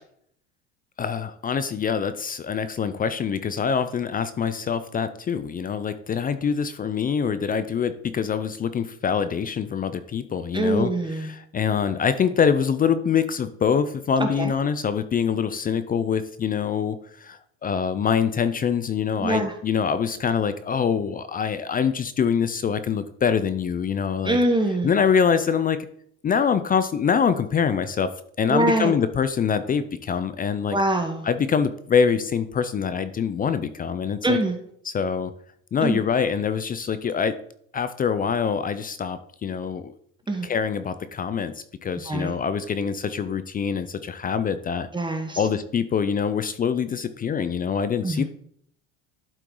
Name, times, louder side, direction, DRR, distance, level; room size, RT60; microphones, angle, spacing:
voice 1, 1.0-24.4 24.8-25.9 26.2-28.1 28.4-30.8 31.2-34.4 34.8-35.3 35.7-37.4 37.7-39.9 40.4-41.5 41.8-44.9 45.4-48.2, left 7 dB, 25° left, 12 dB, 0.5 m, -24 dB
voice 2, 10.5-11.3 14.2-14.5 19.2-19.5 24.2-24.9 28.5-28.9 30.7-31.3 34.2-34.5 35.8-36.0 40.3-40.5 42.1-42.3 44.9-45.4 48.0-48.2, right 1 dB, 15° right, 5 dB, 1.1 m, -23 dB
12.0 x 4.5 x 3.8 m, 0.66 s
supercardioid pair, 100°, 35 cm